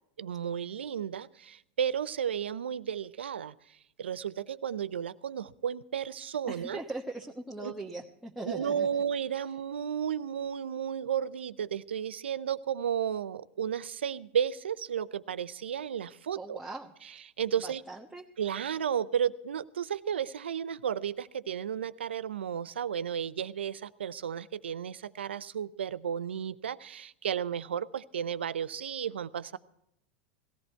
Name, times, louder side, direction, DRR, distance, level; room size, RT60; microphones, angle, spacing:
voice 1, 0.2-3.5 4.0-6.8 7.6-7.7 8.5-16.6 17.4-17.8 18.4-29.6, right 8 dB, 90° right, 15 dB, 0.6 m, -33 dB
voice 2, 6.5-8.9 16.3-16.9 17.6-18.3, right 2 dB, 5° right, -2 dB, 1.2 m, -40 dB
18.5 x 14.5 x 4.5 m, 0.78 s
hypercardioid pair, 105°, 6 cm